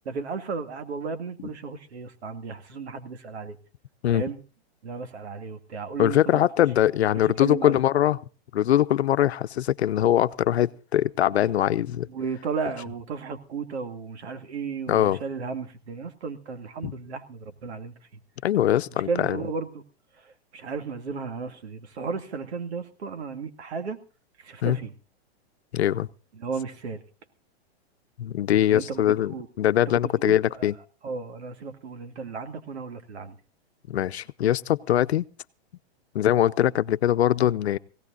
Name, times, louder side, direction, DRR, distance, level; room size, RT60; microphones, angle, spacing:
voice 1, 0.0-3.6 4.1-4.4 4.8-6.4 7.2-7.8 12.1-17.9 19.1-19.8 20.5-24.0 24.4-24.9 26.3-27.0 28.7-29.5 29.9-30.7 31.0-33.4, right 5 dB, 85° right, 9 dB, 2.4 m, -34 dB
voice 2, 6.0-8.2 8.5-12.1 14.9-15.2 16.8-16.9 18.4-19.4 24.6-24.8 25.7-26.1 28.2-30.7 33.9-35.2 36.1-37.8, left 11 dB, 85° left, 13 dB, 0.8 m, -22 dB
23.0 x 17.0 x 2.6 m, 0.34 s
hypercardioid pair, 155°, 32 cm